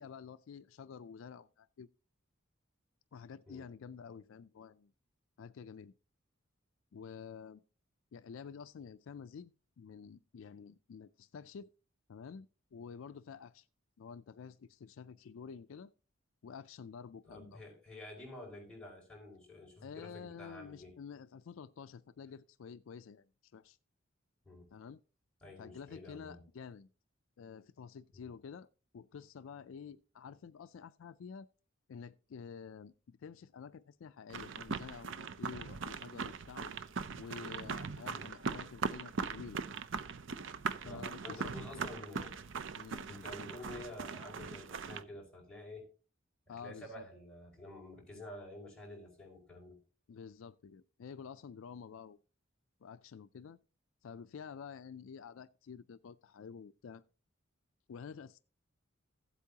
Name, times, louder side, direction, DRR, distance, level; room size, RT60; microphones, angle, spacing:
voice 1, 0.0-1.9 3.1-4.9 5.4-5.9 6.9-7.6 8.1-9.5 9.8-11.7 12.1-13.7 14.0-15.9 16.4-17.6 19.8-23.8 24.7-25.0 25.6-26.9 27.4-28.7 28.9-31.5 31.9-36.7 37.2-39.6 40.8-41.8 42.7-43.3 46.5-47.1 50.1-52.2 52.8-53.6 54.0-57.0 57.9-58.4, left 6 dB, 70° left, 0.4 m, -49 dB
voice 2, 17.2-20.9 24.4-24.7 25.4-26.4 28.1-28.3 37.7-38.2 40.8-42.4 43.1-45.8 46.5-49.8, left 1 dB, 5° left, 5.1 m, -50 dB
sound 1, 34.3-45.0, right 5 dB, 65° right, 0.5 m, -40 dB
15.5 x 8.3 x 2.8 m
head